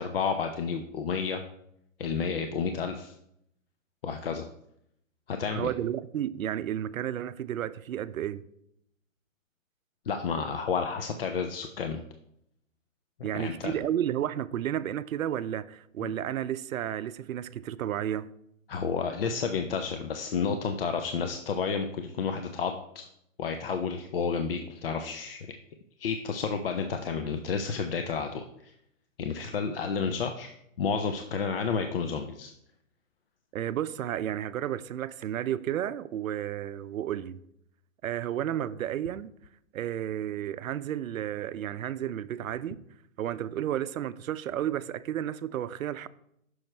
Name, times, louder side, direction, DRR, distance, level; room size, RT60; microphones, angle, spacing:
voice 1, 0.0-1.4 2.0-3.1 4.0-4.5 5.3-5.7 10.1-12.0 13.3-13.8 16.0-16.1 18.7-23.1 23.4-25.4 26.0-28.7 29.2-32.5, left 5 dB, 45° left, 0.6 m, -31 dB
voice 2, 5.5-8.4 13.2-18.3 33.5-37.4 38.0-39.3 39.7-42.8 43.2-46.1, right 11 dB, 80° right, 0.6 m, -32 dB
8.7 x 6.3 x 3.3 m
hypercardioid pair, 160°, 40 cm